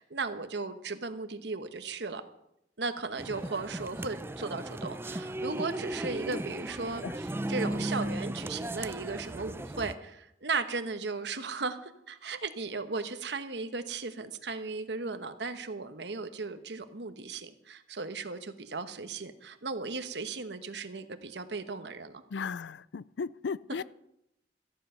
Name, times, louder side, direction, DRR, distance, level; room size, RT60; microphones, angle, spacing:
voice 1, 0.0-2.2 2.8-22.2, right 4 dB, 75° right, 1.1 m, -36 dB
sound 1, 3.2-9.9, right 1 dB, 15° right, 0.4 m, -36 dB
voice 2, 22.3-23.8, left 5 dB, 80° left, 0.4 m, -36 dB
14.0 x 10.5 x 5.6 m
head